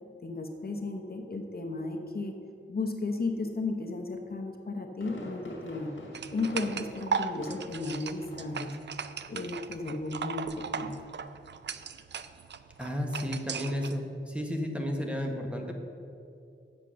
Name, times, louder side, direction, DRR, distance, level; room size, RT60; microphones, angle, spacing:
voice 1, 0.2-2.3 2.7-5.9 6.3-8.8 9.3-10.9, left 3 dB, 50° left, 3 dB, 0.9 m, -34 dB
Fireworks, 4.5-8.0 8.3-8.6 9.0-9.1, left 1 dB, 70° left, 1.8 m, -45 dB
sound 1, 6.1-13.9, right 6 dB, 60° right, 0.4 m, -37 dB
voice 2, 12.8-15.8, equal, 5° right, 2 dB, 1.1 m, -33 dB
8.2 x 6.9 x 6.3 m, 2.6 s
wide cardioid pair, 100°, 20 cm